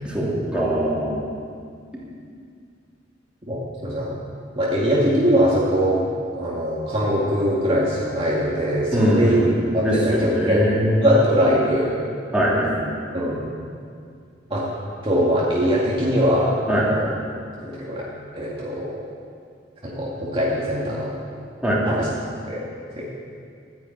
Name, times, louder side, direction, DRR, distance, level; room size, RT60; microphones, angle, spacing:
voice 1, 0.0-1.2 8.9-9.5 9.8-11.0 12.3-12.8 16.7-16.9 21.6-21.8, equal, 5° right, -6 dB, 3.2 m, -21 dB
voice 2, 3.4-4.1 4.6-6.0 6.4-9.4 9.7-10.6 11.0-12.0 13.1-13.4 14.5-14.7 15.0-17.1 17.6-18.0 18.3-19.0 19.8-21.1 21.9-22.1 22.5-22.6 23.0-23.1, equal, 30° right, -7 dB, 2.2 m, -22 dB
12.5 x 10.0 x 8.8 m, 2.2 s
head